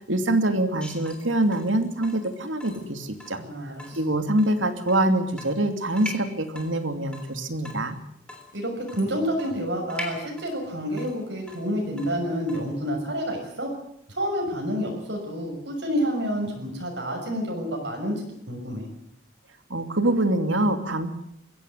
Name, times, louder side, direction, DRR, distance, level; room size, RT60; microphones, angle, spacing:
voice 1, 0.0-3.4 4.0-8.0 19.7-21.1, right 1 dB, 75° right, 8 dB, 2.8 m, -24 dB
Water tap faucet / Drip, 0.8-12.8, left 2 dB, 5° left, 3.4 m, -43 dB
voice 2, 3.4-4.0 8.5-13.7 14.1-18.2 18.5-18.9, equal, 60° right, 1 dB, 6.4 m, -29 dB
22.5 x 16.0 x 9.6 m, 0.72 s
head